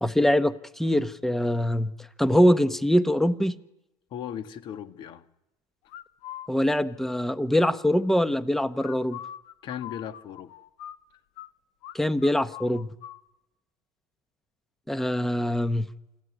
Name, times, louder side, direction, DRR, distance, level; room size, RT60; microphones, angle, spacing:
voice 1, 0.0-1.9 2.2-3.6 6.5-9.2 11.9-12.9 14.9-15.9, equal, 5° left, 12 dB, 1.0 m, -23 dB
voice 2, 4.1-5.2 9.6-10.5, left 9 dB, 45° left, 10 dB, 1.8 m, -37 dB
sound 1, 5.9-6.5 8.8-11.5 11.8-12.0 12.2-13.2, left 12 dB, 65° left, 1.2 m, -42 dB
27.5 x 14.0 x 9.6 m, 0.91 s
cardioid pair, 135°, 11 cm